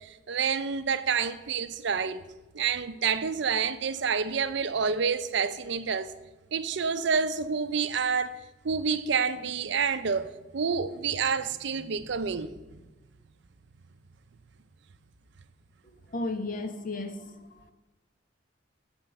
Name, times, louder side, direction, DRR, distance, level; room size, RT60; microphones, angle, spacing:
voice 1, 0.0-2.2 2.5-6.1 6.5-8.3 8.6-12.8, right 6 dB, 65° right, 0.5 m, -28 dB
voice 2, 15.8-17.7, left 2 dB, 45° left, 0.9 m, -35 dB
11.5 x 4.5 x 7.6 m
head